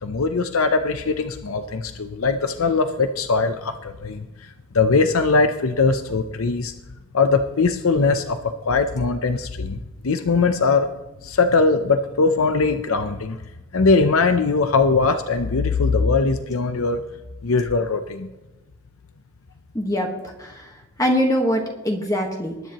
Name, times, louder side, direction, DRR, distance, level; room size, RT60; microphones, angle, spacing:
voice 1, 0.0-6.7 7.1-9.8 10.0-10.9 11.2-13.4 13.7-17.0 17.4-18.3, left 4 dB, 70° left, 8 dB, 0.7 m, -21 dB
voice 2, 19.7-20.7 21.0-22.7, equal, 15° left, 1 dB, 1.4 m, -23 dB
20.5 x 10.0 x 3.0 m, 1.1 s
head